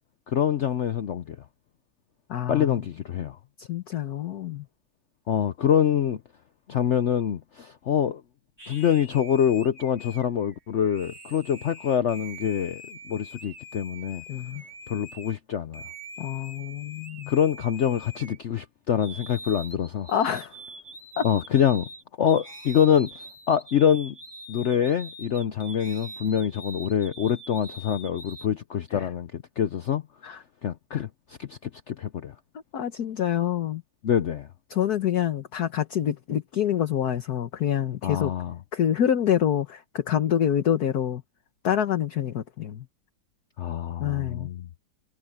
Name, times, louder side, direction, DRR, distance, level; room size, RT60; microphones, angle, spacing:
voice 1, 0.3-1.4 2.5-3.4 5.3-6.2 6.7-8.2 8.7-14.2 14.9-15.8 17.3-20.1 21.2-21.9 22.2-23.1 23.5-24.1 24.5-30.0 30.6-31.1 31.4-32.3 34.0-34.5 38.0-38.5 43.6-44.7, left 9 dB, 80° left, 0.6 m, -25 dB
voice 2, 2.3-2.8 3.6-4.6 14.3-14.6 16.2-17.3 20.1-20.5 21.2-21.3 28.9-29.1 30.2-30.4 30.9-31.1 32.7-33.8 34.7-38.3 38.7-41.2 41.6-42.9 44.0-44.5, left 10 dB, 55° left, 1.5 m, -26 dB
sound 1, 8.6-15.4 15.7-18.6 19.0-28.5, equal, 10° right, 3.8 m, -44 dB
omnidirectional pair, 2.1 m